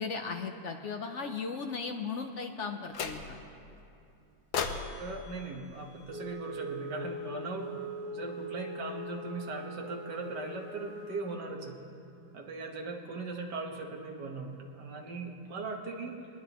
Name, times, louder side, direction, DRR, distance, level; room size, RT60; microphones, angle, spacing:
voice 1, 0.0-3.4, left 4 dB, 70° left, 5 dB, 0.7 m, -36 dB
sound 1, 2.9-3.6 4.5-6.8, left 6 dB, 90° left, 1.6 m, -38 dB
voice 2, 5.0-7.7 8.1-11.9 12.3-16.3, right 3 dB, 65° right, 1 dB, 1.9 m, -39 dB
Wind instrument woodwind instrument, 6.1-11.4, equal, 80° right, 4.3 m, -42 dB
26.0 x 10.5 x 3.0 m, 2.7 s
omnidirectional pair, 2.0 m